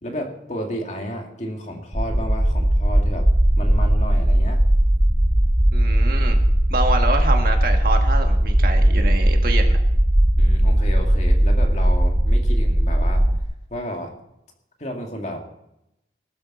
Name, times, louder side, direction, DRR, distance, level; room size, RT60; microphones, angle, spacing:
voice 1, 0.0-3.3 3.6-4.6 10.4-13.3 13.7-14.2 14.8-15.5, equal, 40° left, 2 dB, 2.4 m, -32 dB
sound 1, 1.9-13.4, right 1 dB, 15° right, 0.7 m, -18 dB
voice 2, 5.7-6.4 6.7-9.8, right 2 dB, 50° right, 3 dB, 1.7 m, -26 dB
20.0 x 12.5 x 4.2 m, 0.84 s
head